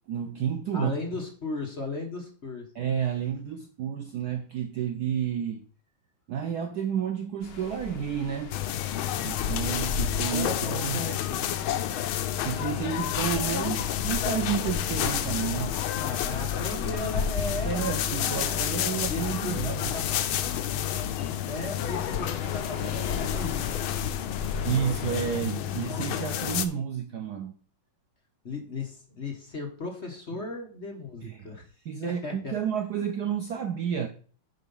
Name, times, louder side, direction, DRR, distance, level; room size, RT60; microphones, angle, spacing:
voice 1, 0.1-0.9 2.7-5.6 6.3-8.5 9.2-11.0 12.4-15.7 17.6-19.9 24.4-27.5 31.2-31.5 31.9-34.1, right 8 dB, 65° right, 1.0 m, -31 dB
voice 2, 0.7-2.7 10.3-11.9 16.0-18.8 19.1-20.2 21.4-23.8 28.4-31.7 32.0-32.6 32.9-33.0, left 3 dB, 35° left, 1.3 m, -36 dB
sound 1, 7.4-25.4, left 5 dB, 60° left, 1.5 m, -37 dB
sound 2, 8.5-26.7, left 11 dB, 75° left, 1.5 m, -30 dB
sound 3, 13.2-15.9 16.2-16.8 17.2-21.4, left 5 dB, 20° right, 2.1 m, -40 dB
7.9 x 5.0 x 5.4 m
omnidirectional pair, 2.3 m